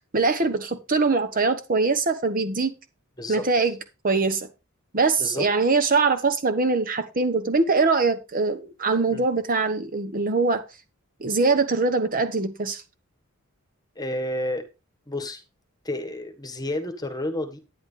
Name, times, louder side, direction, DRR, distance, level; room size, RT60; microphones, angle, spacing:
voice 1, 0.1-2.7 3.3-3.8 4.0-4.5 4.9-10.6 11.2-12.8, right 4 dB, 40° right, 1.1 m, -22 dB
voice 2, 3.2-3.5 5.2-5.5 9.1-9.2 13.9-14.7 15.1-15.4 15.8-17.6, left 1 dB, 20° left, 1.5 m, -30 dB
10.5 x 10.0 x 3.4 m
head